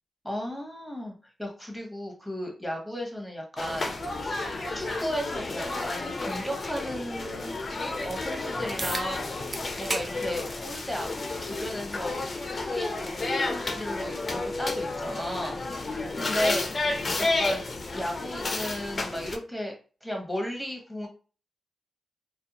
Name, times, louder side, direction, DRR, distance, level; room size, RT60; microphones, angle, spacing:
voice 1, 0.2-1.1 1.4-3.9 4.2-4.4 4.7-7.5 8.0-9.3 9.8-11.1 11.4-12.2 12.5-16.7 17.2-17.6 17.9-19.7 20.0-21.1, equal, ahead, 0 dB, 1.0 m, -35 dB
sound 1, 3.6-19.4, left 3 dB, 45° left, 0.4 m, -31 dB
sound 2, 8.8-9.1 9.5-10.1 10.5-10.6 11.7-11.8 16.7-16.8, right 3 dB, 40° right, 0.3 m, -32 dB
2.5 x 2.2 x 2.8 m, 0.37 s
cardioid pair, 70°, 0 cm